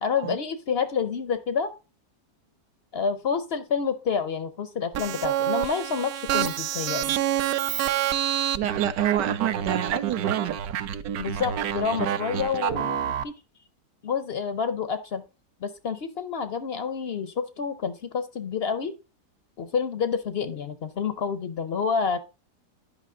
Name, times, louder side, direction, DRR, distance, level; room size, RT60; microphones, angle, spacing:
voice 1, 0.0-1.7 2.9-7.2 11.2-13.3 14.0-15.2 15.6-18.9 19.6-22.2, left 6 dB, 65° left, 0.6 m, -28 dB
sound 1, 4.9-13.2, right 10 dB, 70° right, 1.0 m, -28 dB
voice 2, 8.6-10.6, right 11 dB, 85° right, 1.3 m, -27 dB
10.0 x 5.6 x 3.7 m
omnidirectional pair, 1.8 m